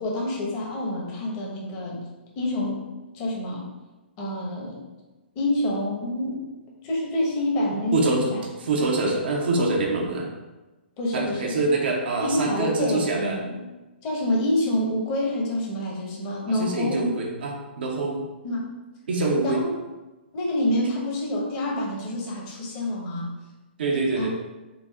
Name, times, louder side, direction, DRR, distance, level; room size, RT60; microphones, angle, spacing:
voice 1, 0.0-2.1 2.3-2.8 3.1-3.7 4.2-4.8 5.3-6.5 6.8-8.4 11.0-11.5 12.2-13.6 14.0-17.1 18.4-18.7 19.4-19.7 20.3-23.3 24.1-24.3, left 1 dB, 35° left, -3 dB, 1.2 m, -27 dB
voice 2, 7.9-8.4 8.7-10.3 11.1-13.4 16.5-18.2 19.1-19.6 23.8-24.3, right 3 dB, 65° right, -1 dB, 0.9 m, -25 dB
3.9 x 2.7 x 3.6 m, 1.1 s
hypercardioid pair, 130°, 6 cm